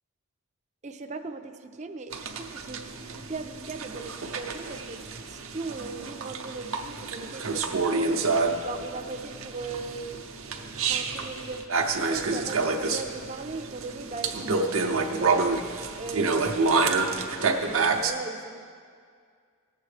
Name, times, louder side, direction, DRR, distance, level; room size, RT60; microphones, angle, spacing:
voice 1, 0.8-5.0 5.3-8.3 8.6-10.3 10.8-11.7 12.1-15.6 16.0-18.7, right 3 dB, 35° right, 6 dB, 0.5 m, -38 dB
sound 1, 2.1-18.1, right 4 dB, 65° right, 0.7 m, -28 dB
17.5 x 7.4 x 3.3 m, 2.1 s
head